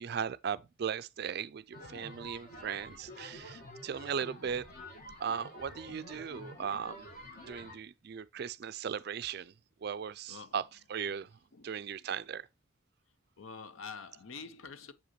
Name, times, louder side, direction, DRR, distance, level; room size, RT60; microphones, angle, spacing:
voice 1, 0.0-4.7 5.2-7.1 7.5-9.5 9.8-10.6 10.9-11.3 11.6-12.5, right 7 dB, 50° right, 0.3 m, -37 dB
sound 1, 1.7-7.8, equal, 40° left, 1.6 m, -48 dB
voice 2, 10.3-10.6 11.1-11.2 11.5-12.1 13.4-14.9, left 5 dB, 75° left, 0.7 m, -47 dB
7.2 x 5.1 x 3.0 m
head